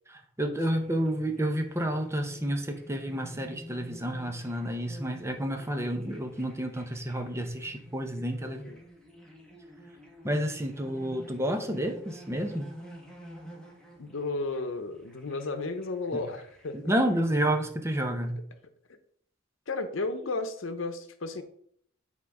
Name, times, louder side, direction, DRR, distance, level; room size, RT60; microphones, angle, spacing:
voice 1, 0.1-8.6 10.2-12.7 16.7-18.4, right 1 dB, 15° right, 5 dB, 0.7 m, -30 dB
sound 1, 0.6-17.2, equal, 5° left, 1.4 m, -50 dB
voice 2, 8.5-8.8 14.0-16.9 19.7-21.4, left 3 dB, 85° left, 9 dB, 0.8 m, -33 dB
8.6 x 3.7 x 4.8 m, 0.66 s
head